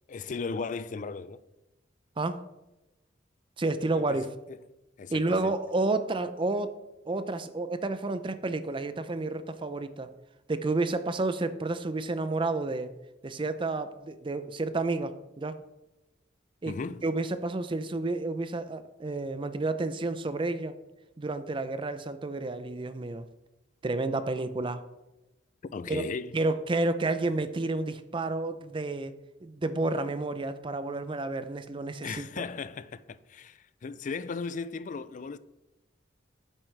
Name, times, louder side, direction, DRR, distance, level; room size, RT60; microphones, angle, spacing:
voice 1, 0.1-1.4 3.9-4.6 5.0-5.5 16.7-17.0 25.7-26.4 32.0-35.4, left 4 dB, 45° left, 0.4 m, -37 dB
voice 2, 3.6-4.3 5.1-6.7 7.1-10.1 10.5-12.9 13.2-15.6 16.6-16.7 17.0-20.7 21.2-23.3 23.8-24.8 25.9-26.0 26.3-29.1 29.4-32.4, right 2 dB, 25° right, 0.5 m, -30 dB
9.4 x 7.4 x 3.3 m
head